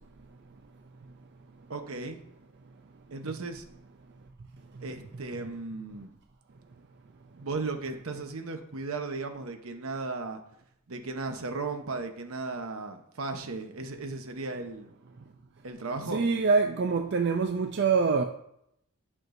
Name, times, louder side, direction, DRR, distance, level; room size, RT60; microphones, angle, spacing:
voice 1, 1.7-2.2 3.1-3.6 4.8-6.1 7.4-10.4 10.9-14.9 15.6-16.2, right 3 dB, 75° right, 0.9 m, -36 dB
voice 2, 16.1-18.2, right 4 dB, 50° right, 0.4 m, -25 dB
10.5 x 6.0 x 2.6 m
head